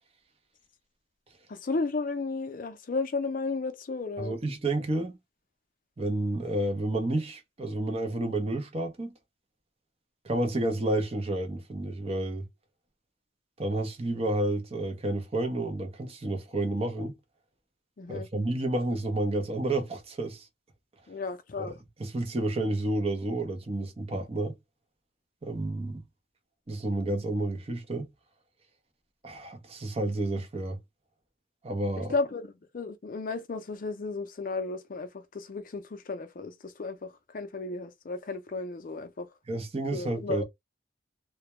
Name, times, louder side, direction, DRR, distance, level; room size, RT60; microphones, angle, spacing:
voice 1, 1.5-4.3 18.0-18.3 21.1-21.8 32.1-39.3 39.9-40.4, left 3 dB, 45° left, 0.4 m, -34 dB
voice 2, 4.2-5.2 6.0-9.1 10.2-12.5 13.6-17.1 18.1-20.5 21.6-21.7 22.0-24.5 25.4-26.0 26.7-28.1 29.2-30.8 31.6-32.1 39.5-40.4, right 2 dB, 30° right, 0.6 m, -30 dB
2.2 x 2.0 x 2.9 m
head